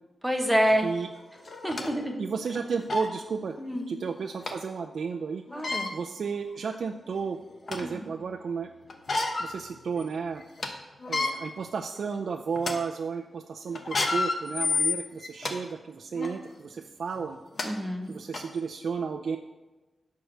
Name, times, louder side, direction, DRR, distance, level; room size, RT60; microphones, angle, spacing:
voice 1, 0.2-0.8 1.6-2.2 3.6-3.9 5.5-5.9 7.8-8.1 17.6-18.1, equal, 5° right, 3 dB, 1.1 m, -27 dB
sound 1, 0.7-0.8 1.5-1.9 2.5-2.6 2.9-3.1 4.5-4.6 5.5-5.9 6.7-6.8 7.2-7.9 8.9-9.5 9.9-10.0 10.4-10.7 11.0-11.3 12.0-12.2 12.6-12.7 13.8-15.5 16.2-16.3 17.2-17.3 17.6-17.7 18.3-18.4, left 3 dB, 45° left, 1.1 m, -29 dB
voice 2, 2.2-3.6 3.9-5.4 5.9-7.4 7.7-8.7 9.4-10.4 11.1-17.4 18.1-19.4, right 5 dB, 65° right, 3 dB, 0.5 m, -33 dB
11.5 x 4.7 x 6.5 m, 1.1 s
wide cardioid pair, 155°, 0 cm